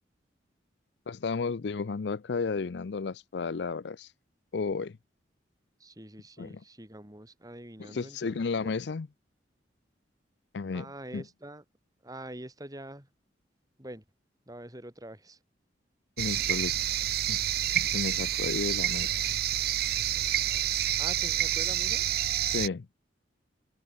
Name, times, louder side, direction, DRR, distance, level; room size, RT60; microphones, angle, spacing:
voice 1, 1.1-4.1 4.5-5.0 6.4-6.5 7.8-9.1 10.5-10.9 11.1-11.2 16.2-16.8 17.3-17.4 17.7-19.2 22.4-22.9, left 4 dB, 65° left, 0.5 m, -33 dB
voice 2, 5.8-8.7 10.7-11.6 12.0-13.1 13.8-14.0 14.5-15.4 21.0-22.1, right 1 dB, 20° right, 3.6 m, -45 dB
sound 1, 16.2-22.7, right 12 dB, 55° right, 0.6 m, -28 dB
head